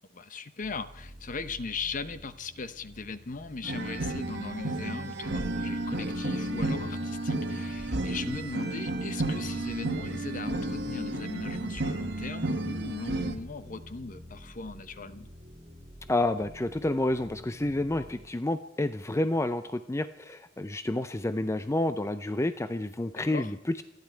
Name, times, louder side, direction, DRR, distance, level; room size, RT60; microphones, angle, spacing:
voice 1, 0.1-15.3 23.3-23.5, left 4 dB, 45° left, 12 dB, 0.9 m, -39 dB
sound 1, 0.6-18.3, equal, 25° right, 2.4 m, -50 dB
sound 2, 3.6-13.3, right 2 dB, 65° right, 1.6 m, -32 dB
voice 2, 16.1-23.8, left 1 dB, 15° left, 11 dB, 0.5 m, -29 dB
27.0 x 10.5 x 4.5 m, 0.87 s
head